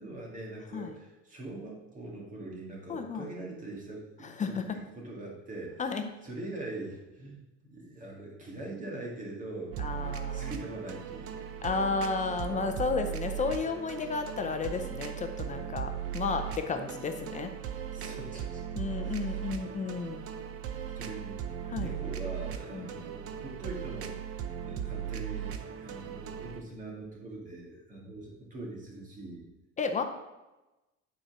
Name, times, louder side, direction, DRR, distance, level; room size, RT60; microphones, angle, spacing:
voice 1, 0.0-7.4 7.7-9.9 10.3-11.5 17.9-18.6 18.9-19.6 20.9-21.4 21.7-29.4, right 2 dB, 25° right, -1 dB, 2.0 m, -43 dB
voice 2, 2.9-3.3 4.4-4.6 5.8-6.1 9.8-10.5 11.6-17.5 18.8-20.2 21.7-21.9 22.7-22.9 29.8-30.0, left 4 dB, 25° left, 6 dB, 0.6 m, -32 dB
sound 1, 9.7-26.6, right 9 dB, 50° right, 0.7 m, -38 dB
9.8 x 4.4 x 6.0 m, 1.0 s
cardioid pair, 170°, 31 cm